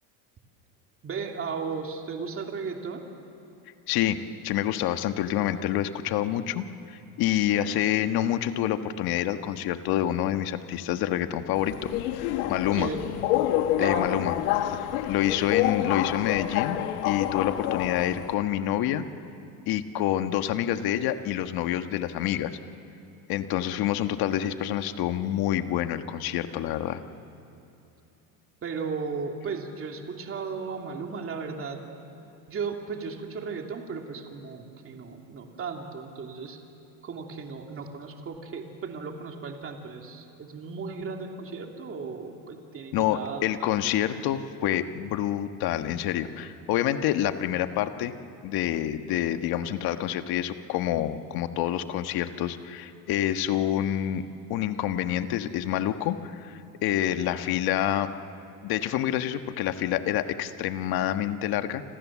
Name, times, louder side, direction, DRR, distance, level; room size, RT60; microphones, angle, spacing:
voice 1, 1.0-3.0 12.7-13.0 13.8-14.2 28.6-31.8 32.5-36.6 37.0-43.7 44.1-44.2, right 5 dB, 30° right, 2 dB, 2.9 m, -35 dB
voice 2, 3.9-12.9 13.8-14.4 14.6-19.0 19.7-22.6 23.3-27.0 42.9-48.1 48.4-58.1 58.6-61.8, left 11 dB, 55° left, 9 dB, 1.4 m, -27 dB
Subway metro underground, 11.5-18.3, left 12 dB, 90° left, 1.7 m, -28 dB
29.5 x 26.0 x 7.5 m, 2.8 s
cardioid pair, 130°, 43 cm